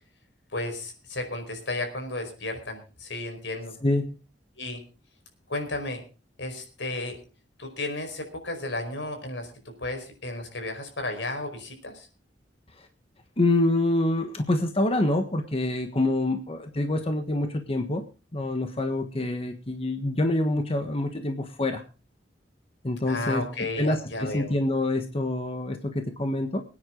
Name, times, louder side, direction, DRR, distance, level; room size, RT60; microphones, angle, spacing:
voice 1, 0.5-3.8 4.6-4.8 5.5-6.0 6.4-7.2 7.6-9.5 9.8-12.1 23.1-24.6, left 2 dB, 80° left, 5 dB, 4.9 m, -33 dB
voice 2, 13.4-18.0 18.3-21.8 22.8-26.6, left 1 dB, 35° left, 5 dB, 1.4 m, -26 dB
24.0 x 9.9 x 3.8 m, 0.34 s
head